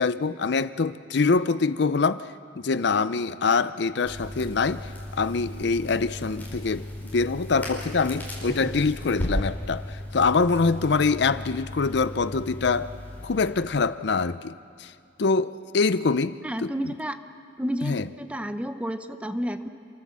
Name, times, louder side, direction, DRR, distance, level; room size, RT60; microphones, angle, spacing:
voice 1, 0.0-2.2 2.6-12.9 13.2-14.5 14.8-14.9 15.2-16.9 17.8-18.1, left 4 dB, 65° left, 0.6 m, -24 dB
Crackle, 4.0-13.6, left 1 dB, 10° left, 5.3 m, -36 dB
voice 2, 16.4-17.2 17.6-19.7, equal, 5° right, 0.8 m, -31 dB
29.0 x 13.5 x 7.5 m
head